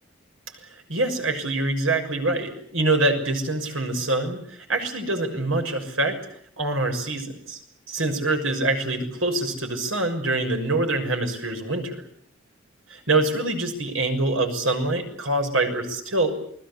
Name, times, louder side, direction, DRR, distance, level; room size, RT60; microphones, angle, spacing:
voice 1, 0.9-6.2 6.6-7.6 7.9-12.0 12.9-16.3, right 2 dB, 85° right, 5 dB, 6.5 m, -25 dB
29.0 x 21.0 x 8.6 m, 0.65 s
head